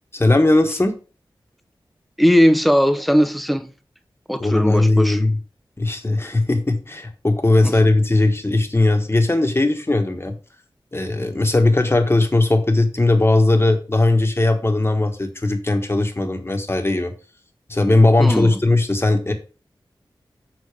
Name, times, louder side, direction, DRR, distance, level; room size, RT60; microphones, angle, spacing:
voice 1, 0.1-0.9 4.4-5.4 5.8-10.3 10.9-17.1 17.7-19.3, left 2 dB, 30° left, 1.3 m, -18 dB
voice 2, 2.2-3.7 4.3-5.2 7.6-7.7 18.2-18.6, equal, ahead, 0.7 m, -18 dB
6.8 x 4.1 x 4.8 m
wide cardioid pair, 55°, 9 cm